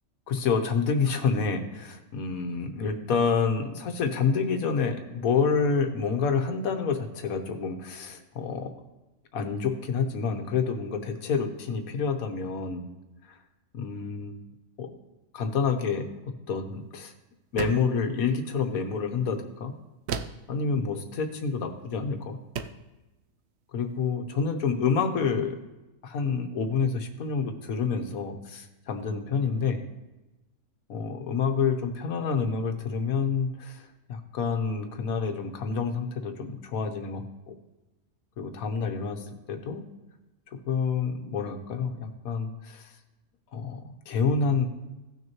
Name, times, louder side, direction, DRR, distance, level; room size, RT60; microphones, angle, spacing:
voice 1, 0.3-8.7 9.3-12.9 13.3-13.4 13.7-14.3 14.8-14.9 15.3-16.1 16.5-17.1 17.5-19.7 20.5-22.4 23.7-25.6 26.0-29.8 30.9-37.5 38.4-39.8 40.5-42.9 43.5-44.7, left 5 dB, 70° left, 5 dB, 1.4 m, -28 dB
sound 1, 17.6-18.0 20.1-20.5 21.8-22.0 22.5-22.9, right 7 dB, 65° right, 0.6 m, -34 dB
16.5 x 6.3 x 3.0 m, 1.0 s
omnidirectional pair, 1.6 m